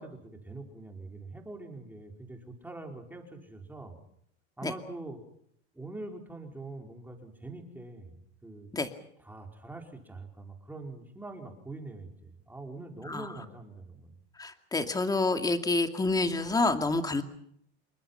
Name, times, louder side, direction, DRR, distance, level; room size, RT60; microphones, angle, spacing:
voice 1, 0.0-4.0 4.6-5.2 5.7-8.2 8.4-8.7 9.2-14.1, right 2 dB, 5° right, 2 dB, 4.9 m, -44 dB
voice 2, 14.4-17.2, left 3 dB, 10° left, 7 dB, 2.4 m, -28 dB
28.5 x 23.5 x 5.8 m, 0.70 s
supercardioid pair, 140°, 34 cm